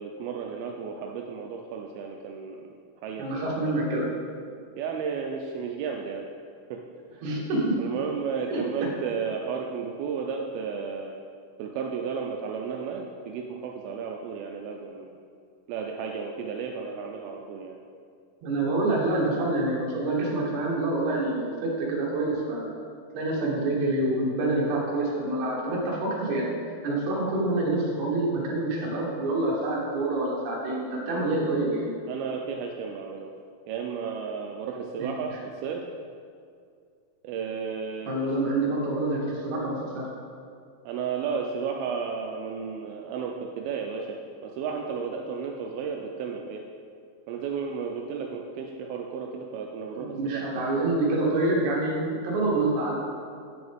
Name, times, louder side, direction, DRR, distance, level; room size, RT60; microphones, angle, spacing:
voice 1, 0.0-2.6 3.0-3.3 4.8-6.3 6.7-6.8 7.1-7.2 7.8-11.2 11.6-15.1 15.7-17.8 32.1-33.3 33.7-35.3 35.6-35.8 37.2-38.1 40.8-46.6 47.3-50.4, right 6 dB, 85° right, 1 dB, 2.4 m, -33 dB
voice 2, 3.2-4.1 7.2-7.8 8.5-8.9 18.4-22.7 23.1-26.5 26.8-31.9 35.0-35.4 38.1-40.1 50.0-53.0, right 2 dB, 60° right, -4 dB, 2.4 m, -27 dB
8.6 x 6.2 x 3.5 m, 2.3 s
omnidirectional pair, 4.4 m